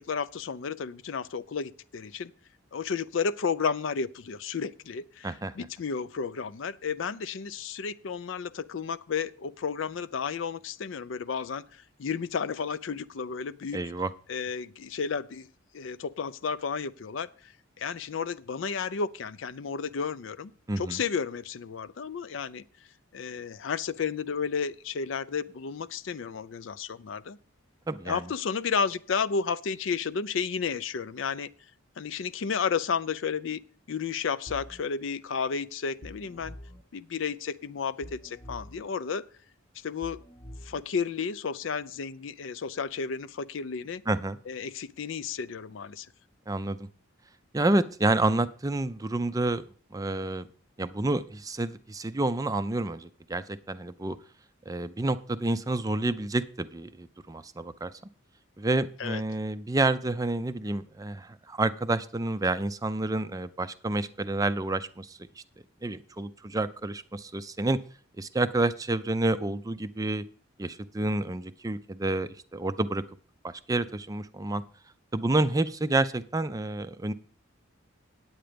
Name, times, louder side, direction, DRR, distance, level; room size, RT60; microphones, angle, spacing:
voice 1, 0.0-2.3 2.7-13.8 14.3-15.5 15.7-17.5 17.8-20.5 20.8-22.6 23.1-27.4 28.0-31.5 32.0-33.6 33.9-36.6 36.9-39.3 39.8-40.2 40.6-44.0 44.5-46.1 59.0-59.2, left 6 dB, 65° left, 16 dB, 0.4 m, -32 dB
voice 2, 5.2-5.6 13.7-14.1 20.7-21.0 27.9-28.2 44.1-44.4 46.5-46.9 47.5-49.6 49.9-50.5 50.8-54.2 54.7-57.9 58.6-65.4 65.8-67.8 68.2-70.2 70.6-73.0 73.4-74.6 75.1-77.1, right 2 dB, 15° right, 13 dB, 0.4 m, -29 dB
sound 1, 34.5-34.8 36.0-36.8 38.0-38.8 40.0-40.8, equal, 25° left, 0.8 m, -45 dB
9.0 x 8.8 x 5.1 m, 0.43 s
head